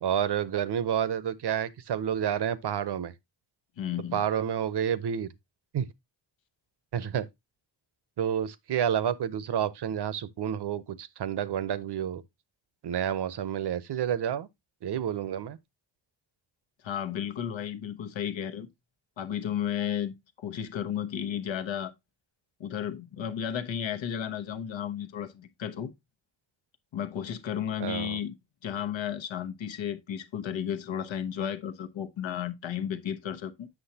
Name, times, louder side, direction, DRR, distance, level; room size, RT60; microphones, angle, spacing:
voice 1, 0.0-3.1 4.1-5.3 5.7-5.9 6.9-7.3 8.2-12.2 12.8-14.5 14.8-15.6 27.8-28.2, right 9 dB, 60° right, 0.8 m, -29 dB
voice 2, 3.8-4.2 16.8-18.7 19.2-21.9 22.6-25.9 26.9-28.3 28.6-33.7, left 9 dB, 75° left, 1.1 m, -33 dB
8.0 x 6.2 x 2.7 m
cardioid pair, 70°, 46 cm